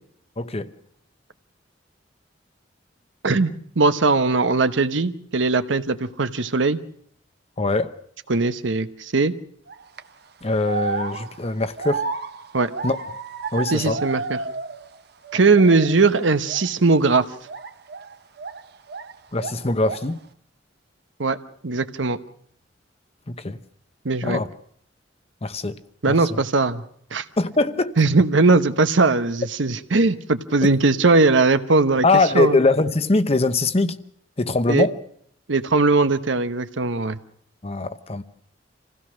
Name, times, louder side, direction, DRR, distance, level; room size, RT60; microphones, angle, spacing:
voice 1, 0.4-0.7 7.6-7.9 10.4-12.0 12.8-13.0 13.5-14.0 19.3-20.2 23.3-23.6 24.2-24.5 25.4-25.8 26.1-26.4 27.4-28.0 32.0-34.0 34.4-35.0 37.6-38.2, left 3 dB, 35° left, 0.9 m, -22 dB
voice 2, 3.2-6.8 8.3-9.3 12.5-12.7 13.7-14.4 15.3-17.2 21.2-21.4 21.6-22.2 24.0-24.4 26.0-26.8 27.1-27.2 28.0-32.6 34.7-34.9 35.5-37.2, right 3 dB, 80° right, 1.0 m, -19 dB
sound 1, 9.7-10.0 10.6-15.0 15.2-16.0 16.4-16.7 17.5-19.1 19.4-20.2, right 4 dB, 55° right, 1.0 m, -32 dB
26.5 x 16.5 x 6.3 m
head